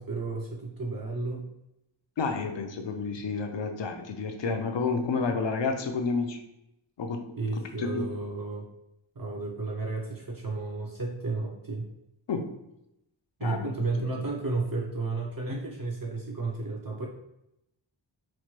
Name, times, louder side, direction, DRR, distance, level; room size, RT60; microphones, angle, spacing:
voice 1, 0.0-1.4 7.4-8.7 9.2-11.9 13.4-17.1, right 3 dB, 45° right, -1 dB, 0.5 m, -32 dB
voice 2, 2.2-6.4 7.0-7.3 7.8-8.1 12.3-12.6 13.4-14.3, left 4 dB, 65° left, 5 dB, 0.5 m, -30 dB
3.0 x 2.1 x 3.0 m, 0.84 s
wide cardioid pair, 50°, 48 cm